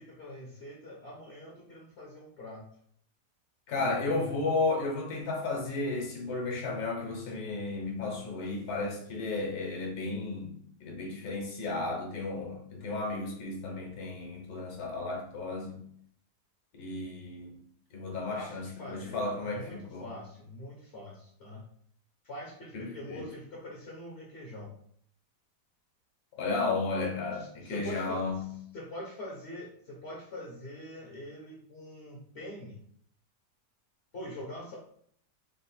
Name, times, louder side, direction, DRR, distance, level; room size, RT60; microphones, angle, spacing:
voice 1, 0.0-2.6 3.7-4.4 18.3-21.7 22.2-24.7 27.0-27.1 27.4-28.2 28.7-32.8 34.1-34.8, left 1 dB, 50° left, -3 dB, 0.9 m, -44 dB
voice 2, 3.7-10.6 10.8-15.8 16.7-17.6 17.9-20.1 22.7-23.2 26.4-28.5, left 3 dB, 70° left, 1 dB, 1.4 m, -33 dB
3.7 x 2.5 x 4.1 m, 0.64 s
omnidirectional pair, 1.7 m